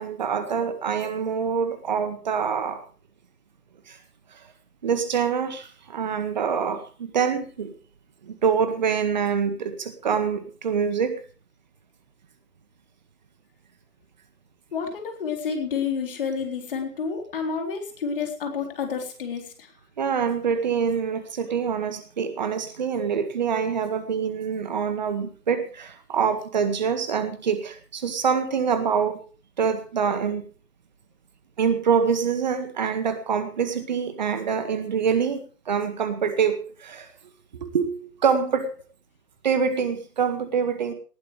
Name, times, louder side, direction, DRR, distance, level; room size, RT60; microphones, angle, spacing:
voice 1, 0.0-2.8 3.9-4.0 4.3-4.5 4.8-7.7 8.2-11.2 20.0-29.2 29.6-30.4 31.6-37.1 37.6-38.7 39.4-40.9, right 6 dB, 25° right, 10 dB, 1.7 m, -25 dB
voice 2, 14.7-19.7, left 6 dB, 35° left, 3 dB, 3.9 m, -29 dB
19.5 x 15.0 x 3.3 m, 0.36 s
figure-of-eight pair, 150°, 49 cm